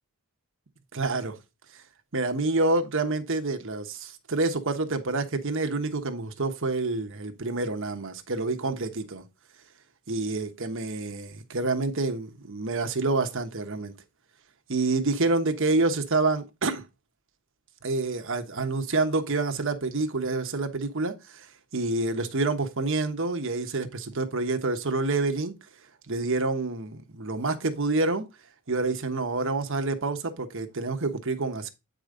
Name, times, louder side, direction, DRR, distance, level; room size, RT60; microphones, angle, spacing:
voice 1, 0.9-1.4 2.1-9.2 10.1-13.9 14.7-16.8 17.8-21.5 21.7-25.5 26.1-28.2 28.7-31.7, right 3 dB, 60° right, 1.2 m, -27 dB
8.7 x 5.1 x 3.8 m
head